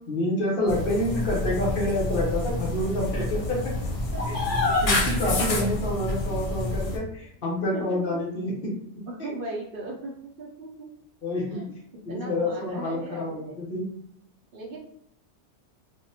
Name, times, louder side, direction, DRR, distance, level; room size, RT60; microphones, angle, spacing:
voice 1, 0.1-3.8 4.3-4.4 4.8-8.7 9.2-9.3 11.2-11.8 12.0-13.9, left 1 dB, 55° left, -4 dB, 1.1 m, -28 dB
sound 1, 0.7-7.0, left 2 dB, 90° left, 1.1 m, -27 dB
voice 2, 7.7-8.2 9.1-10.9 11.5-11.7 12.1-13.6 14.5-14.8, right 2 dB, 60° right, -2 dB, 0.7 m, -38 dB
3.4 x 2.1 x 2.7 m, 0.70 s
omnidirectional pair, 1.2 m